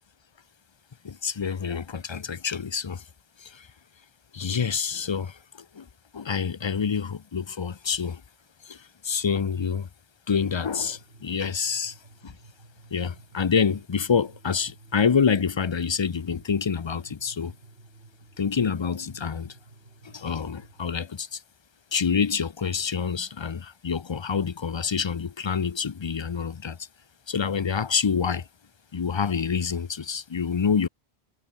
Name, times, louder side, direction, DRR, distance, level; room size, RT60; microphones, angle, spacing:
voice 1, 1.0-3.0 3.4-3.7 4.3-5.4 5.7-5.8 6.1-8.2 8.7-9.9 10.3-12.0 12.2-12.3 12.9-17.5 18.4-19.5 20.0-21.4 21.9-26.8 27.3-28.5 28.9-30.9, left 6 dB, 40° left, 0.4 m, -27 dB
sound 1, 10.4-20.8, right 3 dB, 70° right, 3.6 m, -53 dB
omnidirectional pair, 1.1 m